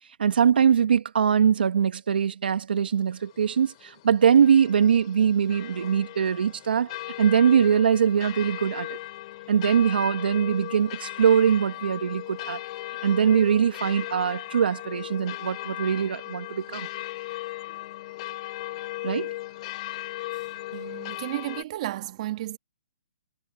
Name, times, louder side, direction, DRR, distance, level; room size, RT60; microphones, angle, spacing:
voice 1, 0.2-6.9 7.2-9.0 9.5-12.6 13.0-16.9 19.0-19.3, right 7 dB, 75° right, 2.0 m, -22 dB
sound 1, 3.1-21.6, left 18 dB, 40° left, 3.6 m, -37 dB
voice 2, 20.3-22.6, right 15 dB, 45° right, 2.2 m, -34 dB
hypercardioid pair, 150°, 5 cm